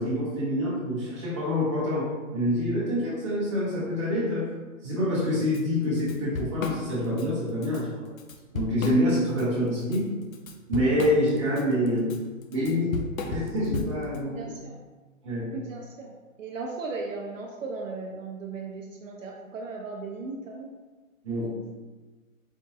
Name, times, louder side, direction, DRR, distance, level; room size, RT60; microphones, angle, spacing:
voice 1, 0.0-4.5 4.8-8.1 8.5-10.1 10.7-12.1 12.5-13.0 13.2-14.4 15.2-15.5 21.2-21.5, left 1 dB, 20° right, -10 dB, 0.9 m, -26 dB
Drum kit / Drum, 5.5-5.6 6.0-7.3 7.6-7.8 8.2-9.4 9.8-14.2, left 3 dB, 70° left, 0.5 m, -35 dB
voice 2, 14.3-14.8 15.5-16.1 16.4-20.7, right 4 dB, 65° right, -1 dB, 0.6 m, -37 dB
4.5 x 2.2 x 2.7 m, 1.3 s
hypercardioid pair, 180°, 42 cm